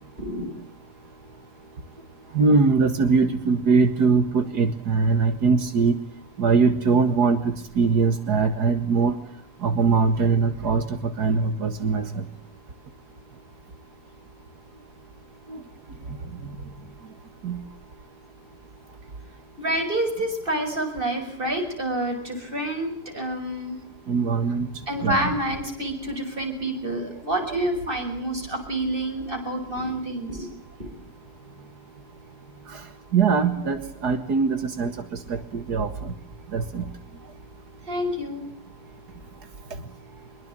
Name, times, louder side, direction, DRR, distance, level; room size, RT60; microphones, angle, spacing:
voice 1, 0.2-0.5 19.6-23.8 24.9-30.5 30.8-30.9 37.9-38.4, right 1 dB, 35° right, 3 dB, 7.0 m, -28 dB
voice 2, 2.3-5.9 6.4-7.4 7.8-9.1 9.6-12.2 15.5-15.6 17.4-17.6 24.1-24.7 25.0-25.2 33.1-34.9 35.3-36.1 36.5-36.8, right 4 dB, 85° right, 8 dB, 2.4 m, -21 dB
24.5 x 22.5 x 9.0 m, 0.66 s
omnidirectional pair, 1.7 m